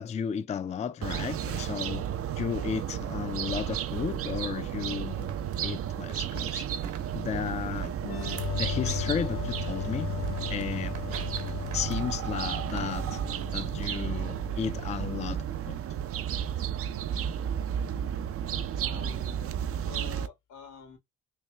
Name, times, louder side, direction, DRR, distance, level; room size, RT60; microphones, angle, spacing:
voice 1, 0.0-2.1 2.4-5.4 5.6-6.7 7.1-7.9 8.5-10.1 10.5-10.9 11.7-13.2 13.5-15.8, left 7 dB, 25° left, 0.3 m, -34 dB
sound 1, 1.0-20.3, right 9 dB, 50° right, 0.5 m, -33 dB
sound 2, 3.9-14.0, right 8 dB, 70° right, 0.9 m, -49 dB
sound 3, 8.0-15.5, left 12 dB, 45° left, 0.8 m, -37 dB
voice 2, 18.8-21.0, left 7 dB, 85° left, 1.4 m, -48 dB
3.2 x 3.1 x 3.3 m
cardioid pair, 90°, 30 cm